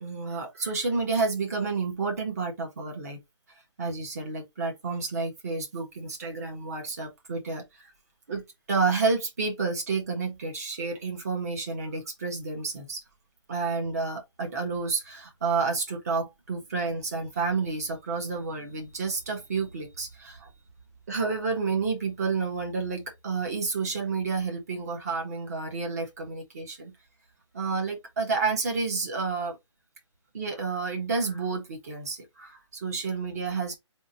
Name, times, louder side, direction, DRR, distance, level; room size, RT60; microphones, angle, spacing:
voice 1, 0.0-3.2 3.8-7.9 8.3-8.4 8.7-13.0 13.5-20.5 21.1-26.9 27.5-29.6 30.3-33.7, right 4 dB, 30° right, 1.3 m, -30 dB
3.6 x 2.5 x 4.1 m
hypercardioid pair, 180°, 16 cm